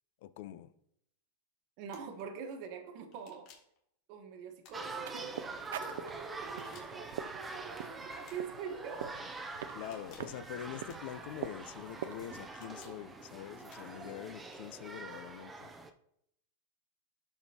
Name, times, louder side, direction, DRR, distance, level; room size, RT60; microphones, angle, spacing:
voice 1, 0.2-0.7 9.7-15.7, left 11 dB, 55° left, 0.5 m, -45 dB
voice 2, 1.8-3.5 4.1-9.1, right 6 dB, 45° right, 1.2 m, -45 dB
sound 1, 1.9-2.2 3.1-3.8 4.6-5.2 6.4-7.1 8.2-8.6 9.7-10.4 10.9-11.4 12.3-13.0 13.7-14.1, left 7 dB, 40° left, 1.8 m, -60 dB
sound 2, 4.7-15.9, right 3 dB, 10° right, 0.5 m, -45 dB
sound 3, 4.9-12.5, right 9 dB, 75° right, 0.5 m, -46 dB
11.5 x 4.5 x 2.9 m
supercardioid pair, 155°, 0 cm